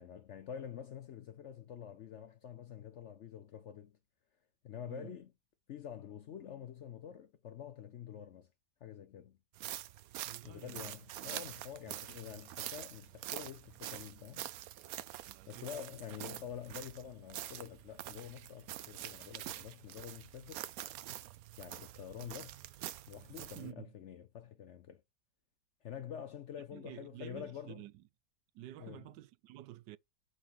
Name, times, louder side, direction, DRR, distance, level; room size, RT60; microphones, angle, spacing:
voice 1, 0.0-4.0 4.6-5.3 5.7-8.5 8.8-9.4 10.4-14.5 15.5-20.6 21.6-22.6 23.1-25.0 25.8-27.8 28.8-29.1, left 9 dB, 65° left, 0.7 m, -47 dB
sound 1, 9.6-23.7, right 13 dB, 70° right, 0.9 m, -46 dB
voice 2, 10.2-10.9 15.3-15.7 23.2-23.9 26.7-28.0 28.5-30.0, right 15 dB, 85° right, 1.2 m, -51 dB
7.9 x 5.8 x 3.0 m
omnidirectional pair, 1.8 m